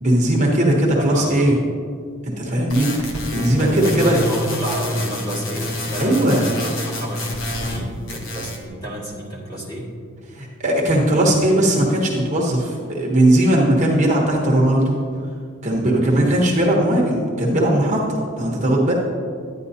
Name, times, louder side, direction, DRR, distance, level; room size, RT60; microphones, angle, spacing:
voice 1, 0.0-1.5 2.2-4.2 6.0-6.4 10.4-15.0 15.6-18.9, right 1 dB, 35° right, -2 dB, 1.0 m, -18 dB
voice 2, 0.9-1.6 3.6-9.9, equal, 20° left, -6 dB, 1.9 m, -30 dB
sound 1, 2.7-7.8 8.1-8.6, left 1 dB, 60° left, 1.1 m, -28 dB
10.5 x 9.9 x 2.8 m, 2.2 s
head